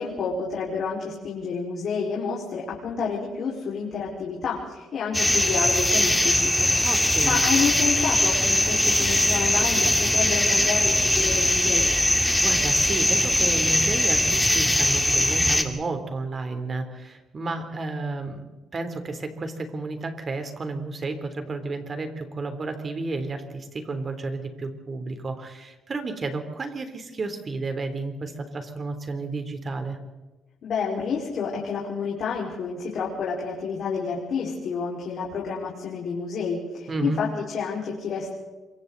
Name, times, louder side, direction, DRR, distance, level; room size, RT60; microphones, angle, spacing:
voice 1, 0.0-6.7 7.2-11.9 30.6-38.3, left 5 dB, 65° left, -4 dB, 4.9 m, -29 dB
sound 1, 5.1-15.6, left 1 dB, 5° left, 2.5 m, -21 dB
voice 2, 6.8-7.4 12.2-18.4 18.7-30.0 36.9-37.2, right 3 dB, 40° right, 7 dB, 3.4 m, -32 dB
27.0 x 25.0 x 4.1 m, 1.2 s
cardioid pair, 90°, 0 cm